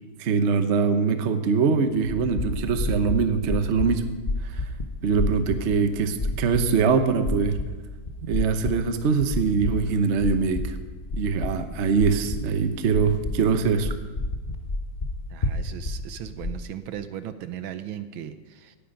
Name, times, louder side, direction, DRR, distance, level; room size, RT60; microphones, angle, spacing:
voice 1, 0.2-4.0 5.0-7.6 8.2-10.8 11.1-13.9, right 5 dB, 50° right, 9 dB, 0.8 m, -23 dB
sound 1, 1.9-16.6, left 2 dB, 50° left, 0.5 m, -31 dB
voice 2, 15.3-18.8, right 10 dB, 75° right, 11 dB, 1.4 m, -37 dB
17.5 x 10.0 x 5.2 m, 1.3 s
omnidirectional pair, 2.4 m